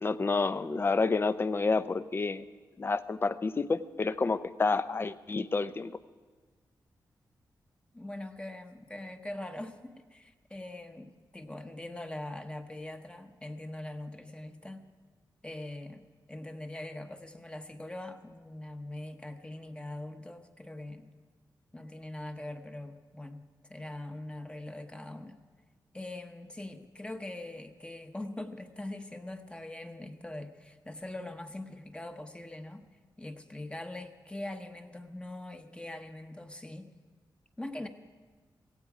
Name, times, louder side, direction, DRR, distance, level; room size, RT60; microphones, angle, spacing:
voice 1, 0.0-2.4 2.8-5.9, left 4 dB, 30° left, 14 dB, 0.5 m, -29 dB
voice 2, 7.9-14.9 15.4-21.1 21.7-25.4 25.9-32.8 33.2-36.9 37.6-37.9, left 1 dB, 15° left, 6 dB, 0.9 m, -42 dB
16.5 x 16.0 x 4.8 m, 1.5 s
wide cardioid pair, 120°, 8 cm